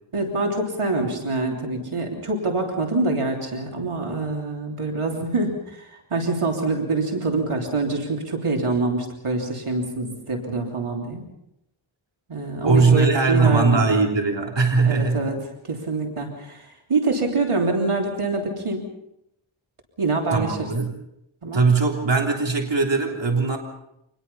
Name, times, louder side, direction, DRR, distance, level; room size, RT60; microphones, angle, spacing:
voice 1, 0.1-11.3 12.3-13.9 14.8-15.4 15.7-18.9 20.0-20.7 21.4-21.6, right 3 dB, 85° right, 2 dB, 3.4 m, -25 dB
voice 2, 12.6-15.2 20.3-21.0 21.5-23.6, right 4 dB, 60° right, 1 dB, 3.5 m, -20 dB
26.0 x 20.5 x 5.6 m, 0.81 s
wide cardioid pair, 70°, 50 cm